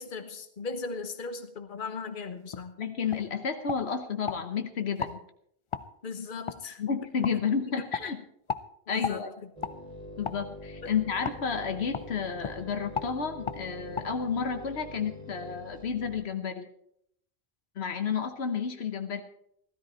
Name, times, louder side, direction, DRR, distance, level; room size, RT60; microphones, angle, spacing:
voice 1, 0.0-2.7 6.0-6.8 8.0-8.1 8.9-9.2 10.8-10.9, left 4 dB, 55° left, 7 dB, 1.3 m, -38 dB
sound 1, 2.5-2.7 3.1-3.3 3.7-4.4 5.0-5.2 5.7-5.9 6.5-6.6 7.2-7.4 7.9-8.1 8.5-8.7 9.0-9.2 9.6-9.8 10.2-10.4 11.2-11.4 11.9-12.1 12.4-12.6 12.9-13.1 13.5-13.6 14.0-14.1, left 6 dB, 40° left, 0.5 m, -34 dB
voice 2, 2.8-5.2 6.8-8.2 8.9-9.3 10.2-16.7 17.8-19.2, left 6 dB, 85° left, 7 dB, 1.3 m, -31 dB
sound 2, 9.6-16.2, left 1 dB, 35° right, 2.5 m, -44 dB
15.5 x 13.0 x 4.4 m, 0.72 s
omnidirectional pair, 1.1 m